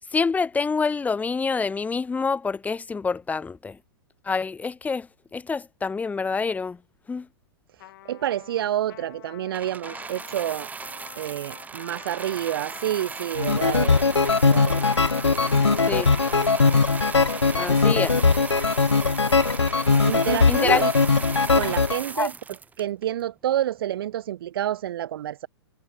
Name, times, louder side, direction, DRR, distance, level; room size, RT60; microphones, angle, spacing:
voice 1, 0.1-3.8 4.3-5.1 5.3-6.8 7.1-7.3 15.9-16.1 17.5-18.2 20.5-20.8 22.2-22.3, left 4 dB, 10° left, 3.0 m, -26 dB
Trumpet, 7.8-18.0 18.5-22.3, left 16 dB, 50° left, 6.3 m, -46 dB
voice 2, 7.8-10.7 11.2-14.0 14.4-14.9 20.0-20.9 21.5-22.3 22.8-25.5, right 12 dB, 55° right, 1.4 m, -28 dB
sound 1, 9.5-23.2 24.0-24.1, right 5 dB, 10° right, 1.5 m, -37 dB
sound 2, 13.4-22.0, left 4 dB, 85° left, 2.3 m, -20 dB
figure-of-eight pair, 115°, 14 cm